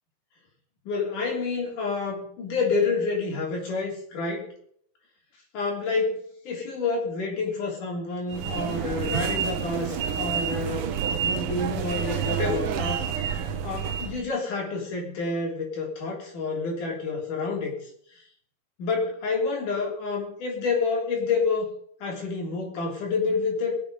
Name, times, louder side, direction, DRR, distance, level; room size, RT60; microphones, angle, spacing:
voice 1, 0.9-4.5 5.5-13.3 13.6-17.7 18.8-21.7 22.0-23.8, left 4 dB, 70° left, -1 dB, 4.9 m, -28 dB
sound 1, 8.3-14.2, right 8 dB, 75° right, 1.3 m, -29 dB
21.0 x 7.6 x 5.3 m, 0.64 s
omnidirectional pair, 3.7 m